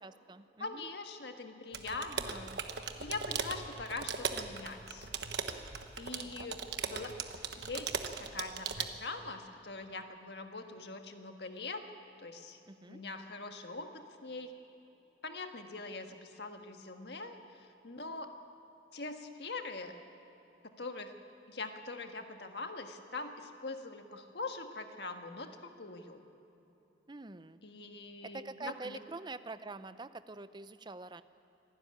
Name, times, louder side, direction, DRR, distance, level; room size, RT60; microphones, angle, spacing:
voice 1, 0.0-0.9 2.1-2.6 6.2-6.5 12.7-13.0 27.1-27.6 28.2-31.2, right 3 dB, 25° right, 13 dB, 0.6 m, -46 dB
voice 2, 0.6-2.5 3.0-5.1 6.0-7.1 7.6-11.8 12.2-12.6 12.9-14.5 15.2-18.3 18.9-19.9 20.6-21.1 21.5-26.2 27.6-29.0, left 3 dB, 65° left, 5 dB, 1.6 m, -43 dB
sound 1, 1.7-8.9, right 6 dB, 65° right, 1.2 m, -39 dB
25.5 x 12.5 x 9.8 m, 3.0 s
head